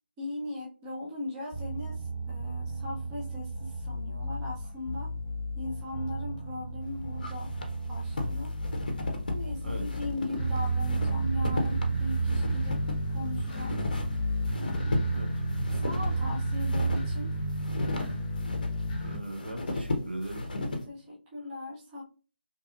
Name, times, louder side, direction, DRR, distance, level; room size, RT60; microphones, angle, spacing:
voice 1, 0.2-5.1 5.5-7.5 7.9-8.6 9.3-13.8 14.5-15.0 15.7-17.4 20.8-22.0, left 2 dB, 10° right, -5 dB, 0.4 m, -39 dB
sound 1, 1.5-19.2, right 2 dB, 20° left, 0.8 m, -32 dB
sound 2, 6.8-20.8, left 1 dB, 50° left, 0.5 m, -35 dB
voice 2, 15.0-15.6 19.0-20.5, right 1 dB, 70° right, 3 dB, 0.7 m, -38 dB
2.8 x 2.3 x 2.4 m, 0.37 s
figure-of-eight pair, 150°, 6 cm